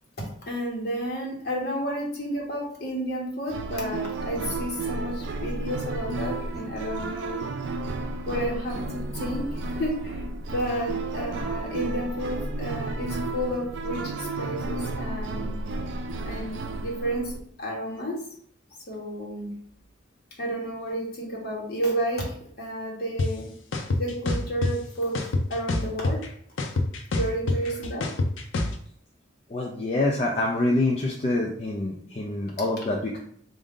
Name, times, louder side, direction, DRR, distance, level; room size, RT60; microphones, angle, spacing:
voice 1, 0.2-7.4 8.3-10.2 10.5-15.5 16.2-17.3 17.6-18.2 18.9-19.5 20.4-22.2 22.6-23.5 24.0-25.2 25.5-26.2 27.1-28.1, equal, 55° left, -2 dB, 1.2 m, -31 dB
sound 1, 3.5-17.4, right 3 dB, 75° right, 0.4 m, -32 dB
sound 2, 23.2-23.3 23.7-24.7 25.1-26.3 26.6-28.7, left 2 dB, 85° left, 0.5 m, -25 dB
voice 2, 29.5-33.2, left 2 dB, 35° left, -1 dB, 0.4 m, -26 dB
3.7 x 2.5 x 3.6 m, 0.62 s
head